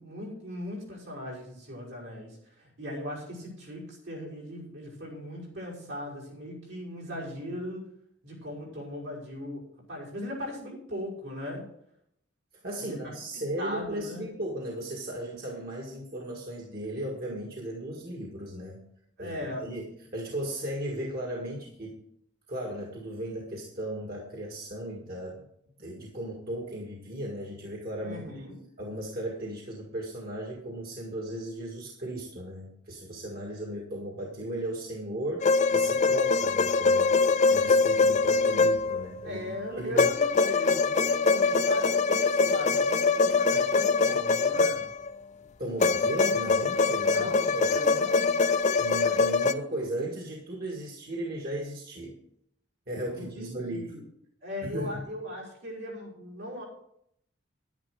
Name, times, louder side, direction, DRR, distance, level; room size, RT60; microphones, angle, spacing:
voice 1, 0.0-7.9 8.2-11.7 12.8-13.1 13.6-14.3 19.2-19.7 28.0-28.6 39.2-44.9 47.1-48.5 53.1-54.0 54.4-56.6, left 1 dB, 75° right, -4 dB, 5.7 m, -39 dB
voice 2, 12.6-18.8 19.2-22.0 22.5-25.4 25.8-28.4 28.8-37.2 37.5-40.1 45.6-47.8 48.8-52.2 52.9-54.0 54.6-55.0, right 1 dB, 50° right, -1 dB, 1.8 m, -36 dB
sound 1, 35.4-39.2 40.0-45.2 45.8-49.5, left 4 dB, 35° left, 0.4 m, -23 dB
10.5 x 10.0 x 4.7 m, 0.72 s
head